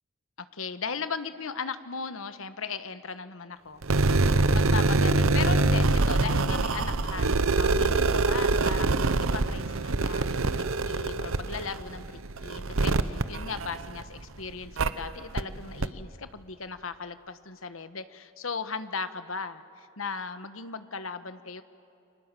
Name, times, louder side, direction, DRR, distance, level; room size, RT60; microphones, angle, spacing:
voice 1, 0.4-21.6, left 5 dB, 75° left, 11 dB, 1.2 m, -37 dB
sound 1, 3.8-14.2 14.8-14.9 15.4-15.5 15.8-15.9, right 3 dB, 80° right, 0.9 m, -25 dB
30.0 x 24.5 x 7.6 m, 2.9 s
head